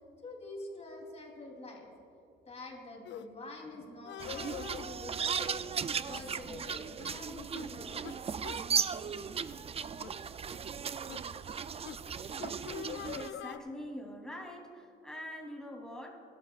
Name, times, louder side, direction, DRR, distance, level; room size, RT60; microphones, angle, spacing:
voice 1, 0.2-1.9 2.4-5.7 6.0-8.1, left 2 dB, 30° left, 0 dB, 3.2 m, -46 dB
sound 1, 3.0-3.3 4.0-4.9 5.8-6.2 6.5-6.6 7.0-7.2 7.5-7.7 8.0-8.2 8.4-8.6 9.3-9.5 10.0-10.2 11.1-11.2 11.8-12.0 12.4-13.6, left 11 dB, 70° left, 0.5 m, -44 dB
sound 2, 4.2-13.3, right 6 dB, 30° right, 0.4 m, -36 dB
voice 2, 12.9-16.2, left 1 dB, 5° left, -1 dB, 3.0 m, -44 dB
20.5 x 12.5 x 2.4 m, 2.7 s
cardioid pair, 90°, 20 cm